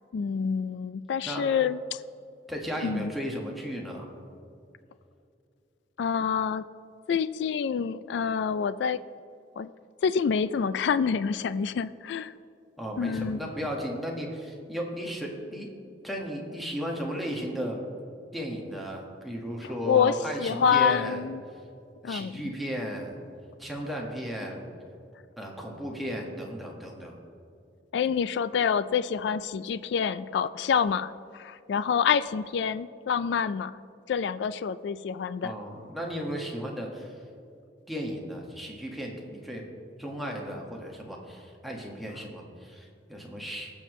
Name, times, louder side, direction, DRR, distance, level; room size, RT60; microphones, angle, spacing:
voice 1, 0.1-2.0 2.8-3.1 6.0-6.7 7.1-9.0 9.6-9.7 10.0-12.3 13.0-13.4 19.6-21.4 22.0-22.3 27.9-33.8 34.1-35.5, left 6 dB, 70° left, 15 dB, 0.3 m, -27 dB
voice 2, 2.5-4.1 12.8-15.7 16.0-17.8 18.3-21.2 22.0-23.2 23.6-24.7 25.4-27.2 35.4-37.1 37.9-39.6 40.0-43.7, equal, ahead, -1 dB, 1.5 m, -35 dB
20.5 x 7.0 x 3.1 m, 2.5 s
head